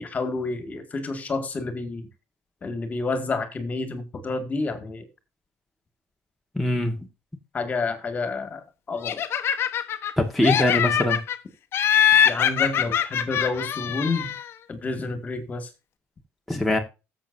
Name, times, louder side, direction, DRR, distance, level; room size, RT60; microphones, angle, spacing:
voice 1, 0.0-2.0 2.6-5.1 7.5-9.2 12.2-14.4 14.7-15.7, left 3 dB, 30° left, 2.1 m, -29 dB
voice 2, 6.6-7.0 10.2-11.2 16.5-16.8, left 1 dB, ahead, 1.6 m, -22 dB
Laughter, 9.0-10.1 10.4-11.4 11.7-14.5, left 9 dB, 50° left, 1.0 m, -23 dB
13.5 x 7.7 x 2.7 m
cardioid pair, 120°, 5 cm